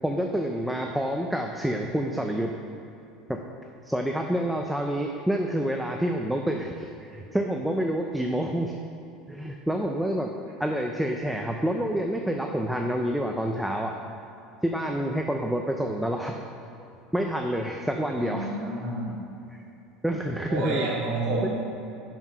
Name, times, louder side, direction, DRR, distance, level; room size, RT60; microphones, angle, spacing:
voice 1, 0.0-2.5 3.3-3.4 3.8-8.7 9.3-10.3 10.6-13.9 14.6-16.3 17.1-18.5 19.5-19.6 20.0-20.9 21.4-21.5, equal, ahead, 2 dB, 0.5 m, -28 dB
voice 2, 18.2-19.1 20.5-21.5, right 2 dB, 55° right, -5 dB, 2.3 m, -29 dB
9.2 x 5.8 x 5.5 m, 2.8 s
supercardioid pair, 135°, 0 cm